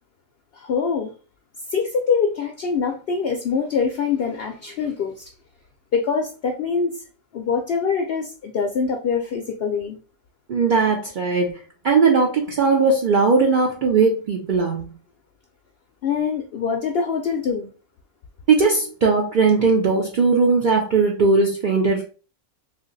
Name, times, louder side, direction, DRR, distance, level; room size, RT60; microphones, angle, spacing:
voice 1, 0.5-1.1 1.7-5.3 5.9-7.0 7.3-10.0 16.0-17.7, left 5 dB, 65° left, 3 dB, 0.6 m, -24 dB
voice 2, 10.5-14.9 18.5-22.0, right 4 dB, 75° right, 0 dB, 0.4 m, -19 dB
2.8 x 2.5 x 3.9 m, 0.36 s
omnidirectional pair, 1.6 m